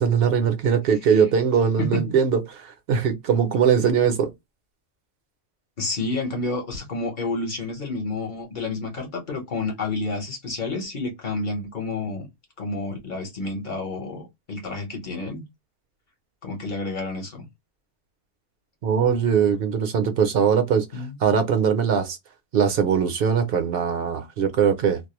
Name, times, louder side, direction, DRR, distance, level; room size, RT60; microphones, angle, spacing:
voice 1, 0.0-4.3 18.8-22.2 22.5-25.0, right 7 dB, 65° right, 0.8 m, -21 dB
voice 2, 1.8-2.2 5.8-12.3 12.6-15.4 16.4-17.5 20.9-21.2, left 3 dB, 50° left, 1.0 m, -30 dB
2.3 x 2.0 x 2.9 m
omnidirectional pair, 1.1 m